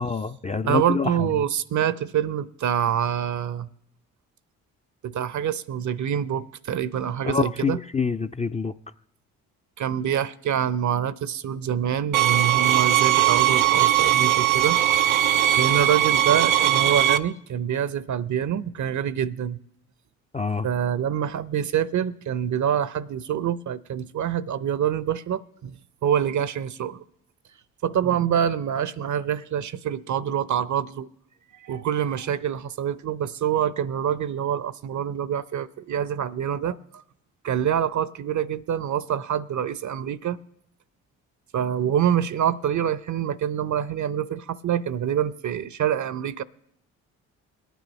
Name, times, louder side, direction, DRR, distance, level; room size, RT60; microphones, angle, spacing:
voice 1, 0.0-1.2 7.2-8.7 20.3-20.7, left 5 dB, 15° left, 0.4 m, -26 dB
voice 2, 0.6-3.7 5.0-7.8 9.8-14.8 15.6-19.6 20.6-25.8 26.0-27.0 27.8-31.1 31.6-37.0 37.4-40.4 41.5-46.4, right 9 dB, 45° right, 0.7 m, -26 dB
sound 1, 12.1-17.2, right 12 dB, 90° right, 0.5 m, -20 dB
22.5 x 9.2 x 3.2 m
hypercardioid pair, 45°, 41 cm